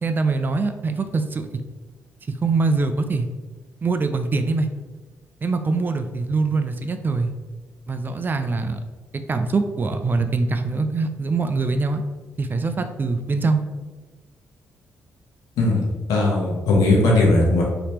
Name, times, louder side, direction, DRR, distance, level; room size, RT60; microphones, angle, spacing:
voice 1, 0.0-1.5 2.4-3.3 3.8-4.7 5.4-7.3 7.9-8.8 9.1-12.0 12.4-13.6, right 3 dB, 35° right, 8 dB, 0.3 m, -23 dB
voice 2, 15.6-17.6, left 2 dB, 85° left, -2 dB, 0.9 m, -18 dB
3.3 x 3.0 x 2.9 m, 1.3 s
cardioid pair, 75°, 6 cm